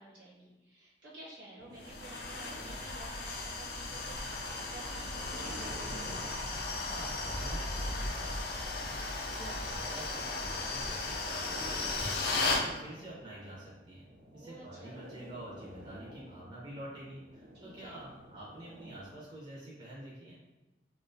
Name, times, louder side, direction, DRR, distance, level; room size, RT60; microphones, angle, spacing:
voice 1, 0.0-5.8 14.3-15.1 17.5-18.0, right 2 dB, 75° right, -6 dB, 1.0 m, -52 dB
sound 1, 1.6-19.2, equal, 90° right, 0.4 m, -51 dB
sound 2, 1.8-12.7, left 3 dB, 60° left, 0.4 m, -36 dB
voice 2, 6.8-9.0 9.4-14.1 14.3-20.4, right 1 dB, 25° right, -7 dB, 0.4 m, -48 dB
2.3 x 2.1 x 2.5 m, 1.1 s
head